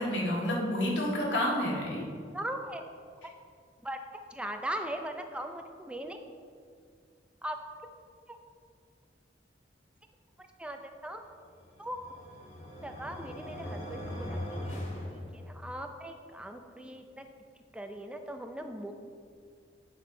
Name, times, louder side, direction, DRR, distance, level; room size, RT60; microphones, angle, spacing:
voice 1, 0.0-2.0, left 1 dB, 85° left, -3 dB, 1.8 m, -29 dB
voice 2, 2.3-2.8 3.8-4.0 4.3-6.2 7.4-7.6 8.3-8.4 10.6-11.2 11.8-12.0 12.8-14.8 15.1-17.3 17.7-18.9, right 1 dB, 5° right, 5 dB, 0.5 m, -39 dB
sound 1, 11.5-15.9, left 1 dB, 45° left, 1.6 m, -40 dB
8.4 x 6.7 x 3.8 m, 2.1 s
head